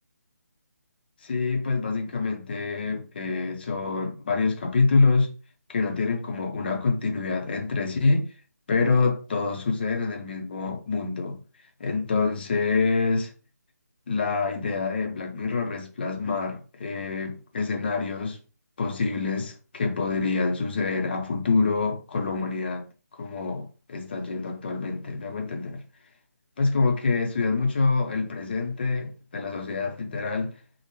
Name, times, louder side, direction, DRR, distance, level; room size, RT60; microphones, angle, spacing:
voice 1, 1.2-5.3 5.7-8.3 8.7-11.4 11.8-13.3 14.1-18.4 18.8-22.9 23.2-25.8 26.6-30.6, left 4 dB, 35° left, 0.6 m, -26 dB
3.2 x 2.0 x 2.9 m
figure-of-eight pair, 150°, 9 cm